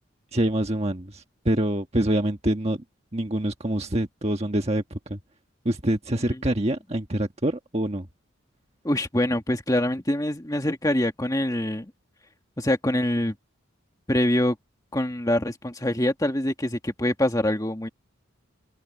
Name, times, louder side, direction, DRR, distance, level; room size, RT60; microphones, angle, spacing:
voice 1, 0.3-2.8 3.1-5.2 5.6-8.0, right 1 dB, 30° right, 1.4 m, -25 dB
voice 2, 8.8-11.9 12.6-13.3 14.1-14.6 14.9-17.9, left 1 dB, 15° left, 1.8 m, -24 dB
open air
head